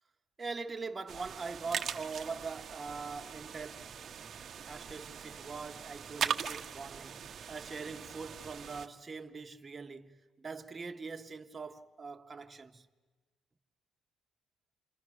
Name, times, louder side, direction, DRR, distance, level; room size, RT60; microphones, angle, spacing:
voice 1, 0.4-3.9 4.7-12.9, right 4 dB, 20° right, 1.3 m, -42 dB
sound 1, 1.1-8.9, right 8 dB, 40° right, 1.0 m, -40 dB
29.5 x 28.0 x 6.4 m
cardioid pair, 150°, 0 cm